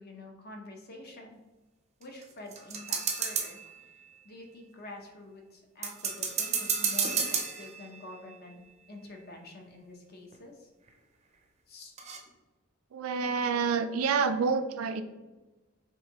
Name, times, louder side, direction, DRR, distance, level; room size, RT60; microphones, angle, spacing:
voice 1, 0.0-1.4 2.0-3.6 4.2-8.6 8.9-10.7 11.7-11.9, left 2 dB, 50° left, 2 dB, 0.8 m, -47 dB
sound 1, 2.0-3.7 5.8-8.1 10.3-10.4 10.9-11.0 12.0-12.2, right 6 dB, 30° right, 0.5 m, -31 dB
voice 2, 12.9-15.0, right 5 dB, 90° right, 10 dB, 0.4 m, -28 dB
4.8 x 3.6 x 3.0 m, 1.2 s
head